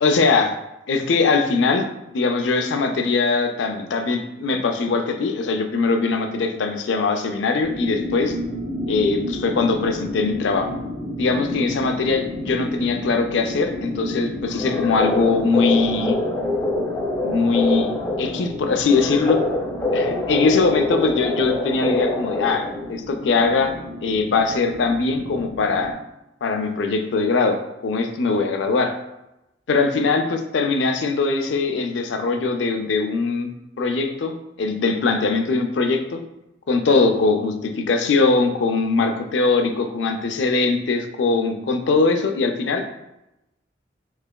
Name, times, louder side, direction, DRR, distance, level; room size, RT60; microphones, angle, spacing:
voice 1, 0.0-0.6 0.9-1.9 2.1-8.4 8.9-10.7 11.2-16.2 17.2-17.9 18.2-19.4 19.9-23.7 24.0-25.9 26.4-28.9 29.7-36.2 36.7-42.9, left 4 dB, 80° left, 6 dB, 0.4 m, -21 dB
sound 1, 7.6-25.9, equal, 35° right, 0.6 m, -32 dB
sound 2, 14.5-22.9, left 2 dB, 15° left, 0.4 m, -25 dB
3.7 x 3.2 x 2.2 m, 0.92 s
head